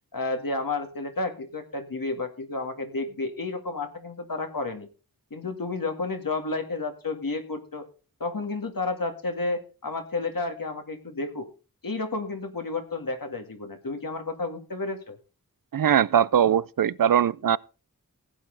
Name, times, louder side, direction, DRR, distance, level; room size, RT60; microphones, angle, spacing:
voice 1, 0.1-4.9 5.3-7.8 8.2-11.5 11.8-15.2, left 3 dB, 70° left, 2.0 m, -31 dB
voice 2, 15.7-17.6, right 9 dB, 70° right, 0.5 m, -21 dB
16.0 x 8.8 x 3.9 m
wide cardioid pair, 70°, 35 cm